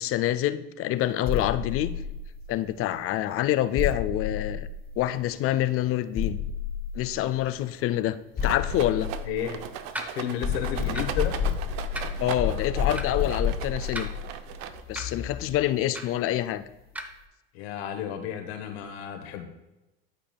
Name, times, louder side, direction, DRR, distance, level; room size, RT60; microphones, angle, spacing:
voice 1, 0.0-1.9 2.5-4.7 5.0-6.4 6.9-8.2 8.4-9.1 12.2-14.1 14.9-16.6, left 13 dB, 45° left, 12 dB, 0.5 m, -26 dB
sound 1, 1.2-2.7 3.8-5.4 6.1-7.5 8.4-10.0 10.4-15.7, left 7 dB, 30° left, 1.0 m, -31 dB
Rattle, 8.4-15.1, right 10 dB, 60° right, 0.6 m, -39 dB
voice 2, 9.2-9.6 10.1-11.4 17.5-19.5, left 9 dB, 80° left, 6 dB, 1.2 m, -32 dB
sound 2, 9.9-10.1 10.9-11.2 11.9-12.1 12.9-13.1 13.9-14.4 15.0-15.1 15.9-16.2 17.0-17.1, right 1 dB, 5° right, 0.7 m, -36 dB
12.0 x 4.9 x 2.3 m, 0.98 s
supercardioid pair, 95°, 31 cm